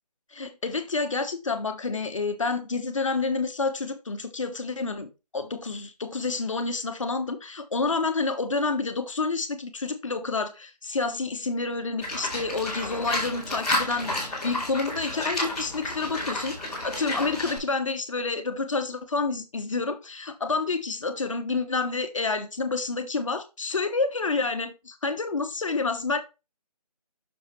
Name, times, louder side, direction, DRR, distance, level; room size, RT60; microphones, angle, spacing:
voice 1, 0.3-26.2, left 3 dB, 50° left, 1.3 m, -29 dB
Livestock farm animals working animals, 12.0-17.6, left 1 dB, ahead, 2.1 m, -31 dB
6.9 x 6.6 x 3.2 m
figure-of-eight pair, 165°, 21 cm